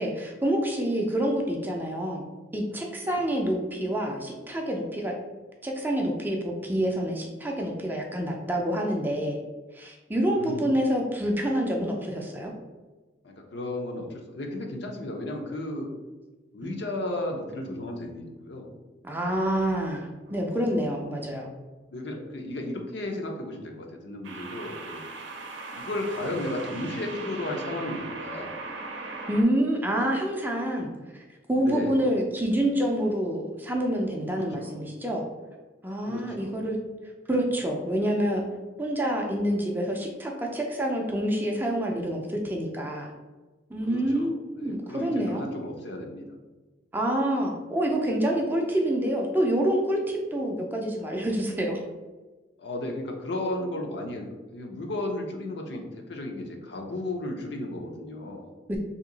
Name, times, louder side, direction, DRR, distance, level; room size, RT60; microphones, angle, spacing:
voice 1, 0.0-2.2 2.5-5.2 5.6-9.4 9.7-12.5 19.0-21.5 29.3-35.3 35.8-36.8 37.3-38.4 38.8-43.1 43.7-45.5 46.9-51.8 58.7-58.8, right 1 dB, 10° right, 0 dB, 0.4 m, -27 dB
voice 2, 10.3-10.7 13.2-15.9 16.5-18.7 21.9-25.0 25.7-28.5 31.6-32.0 34.3-34.7 36.1-36.5 43.9-46.3 52.6-58.5, left 1 dB, 65° left, 2 dB, 0.6 m, -34 dB
sound 1, 20.3-20.6 24.2-29.4, right 3 dB, 85° right, 0.6 m, -39 dB
2.8 x 2.7 x 3.8 m, 1.2 s
head